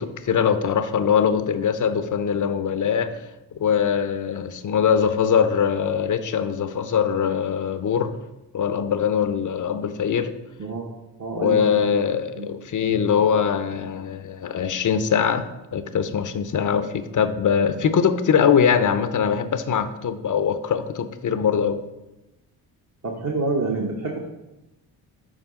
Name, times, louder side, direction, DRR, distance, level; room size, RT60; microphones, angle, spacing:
voice 1, 0.0-3.1 3.6-8.1 8.5-10.3 11.4-21.8, left 7 dB, 40° left, 11 dB, 0.7 m, -22 dB
voice 2, 10.6-10.9 11.2-12.0 12.4-12.5 23.0-24.3, right 3 dB, 35° right, -1 dB, 1.1 m, -27 dB
7.4 x 4.9 x 3.7 m, 0.99 s
supercardioid pair, 50°, 45 cm